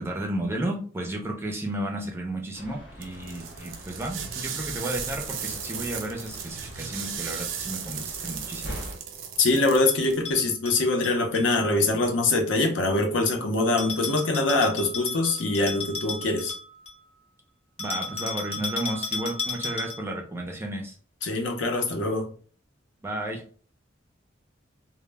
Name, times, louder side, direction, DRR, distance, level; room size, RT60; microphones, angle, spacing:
voice 1, 0.0-8.8 17.8-21.0 23.0-23.4, right 1 dB, 15° right, 1 dB, 0.4 m, -33 dB
sound 1, 2.5-9.0, equal, 85° left, 0.9 m, -43 dB
sound 2, 3.0-10.2, right 7 dB, 85° right, 0.5 m, -36 dB
voice 2, 9.4-16.5 21.2-22.3, left 2 dB, 70° left, 3 dB, 0.6 m, -23 dB
Bell, 9.9-11.6 13.8-17.0 17.8-20.2, left 4 dB, 30° left, 0.6 m, -34 dB
2.1 x 2.0 x 3.3 m, 0.42 s
head